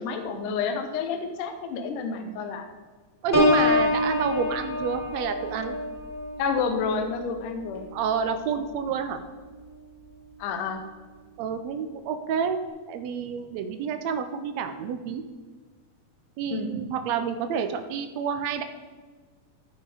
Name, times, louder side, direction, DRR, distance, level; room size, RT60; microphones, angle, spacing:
voice 1, 0.0-2.7 6.4-7.9 10.4-10.8 16.5-16.8, left 5 dB, 75° left, 6 dB, 2.3 m, -29 dB
voice 2, 3.2-5.7 7.9-9.2 11.4-12.6 12.9-15.3 16.4-18.6, right 7 dB, 80° right, 8 dB, 1.5 m, -29 dB
Piano, 3.3-8.9 9.4-9.8, left 2 dB, 20° left, 1.4 m, -27 dB
14.5 x 5.6 x 4.9 m, 1.4 s
omnidirectional pair, 3.9 m